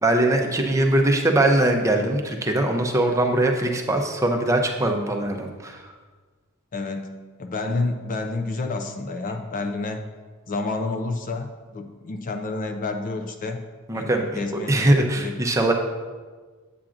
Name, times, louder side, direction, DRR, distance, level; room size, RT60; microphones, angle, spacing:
voice 1, 0.0-5.8 13.9-14.4 14.7-15.7, right 1 dB, 15° right, 2 dB, 0.6 m, -21 dB
voice 2, 6.7-10.1 10.5-13.6 13.9-15.3, left 3 dB, 35° left, 6 dB, 0.4 m, -29 dB
8.5 x 7.3 x 2.5 m, 1.4 s
head